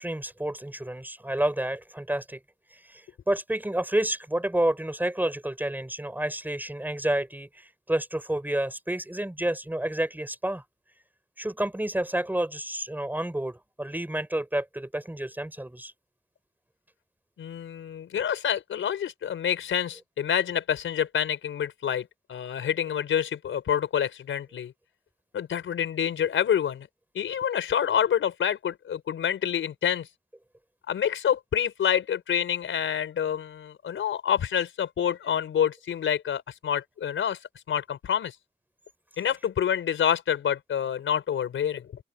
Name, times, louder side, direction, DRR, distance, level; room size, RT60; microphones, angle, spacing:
voice 1, 0.0-2.4 2.7-10.6 11.4-15.9, right 1 dB, 10° right, 5.4 m, -29 dB
voice 2, 17.4-24.7 25.3-26.9 27.1-30.1 30.9-37.4 37.7-38.3 39.2-41.9, left 9 dB, 80° left, 4.7 m, -27 dB
open air
cardioid pair, 85°, 20 cm